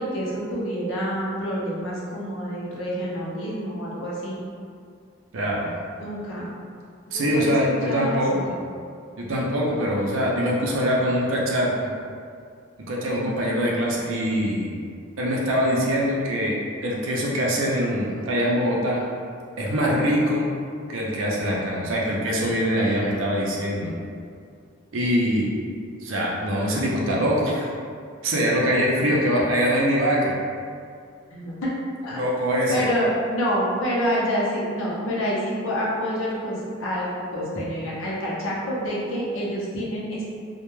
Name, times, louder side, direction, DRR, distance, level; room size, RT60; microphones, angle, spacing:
voice 1, 0.0-4.4 6.0-6.5 7.1-8.5 31.3-31.7 32.0-32.2 32.7-40.2, equal, 70° left, -6 dB, 0.6 m, -27 dB
voice 2, 5.3-5.7 7.1-8.3 9.2-11.9 12.9-14.7 15.2-16.6 16.8-19.0 19.6-20.5 20.9-23.9 24.9-25.5 26.0-27.7 28.2-30.4 32.1-32.8, equal, 70° right, -3 dB, 0.5 m, -23 dB
2.1 x 2.1 x 3.0 m, 2.3 s
head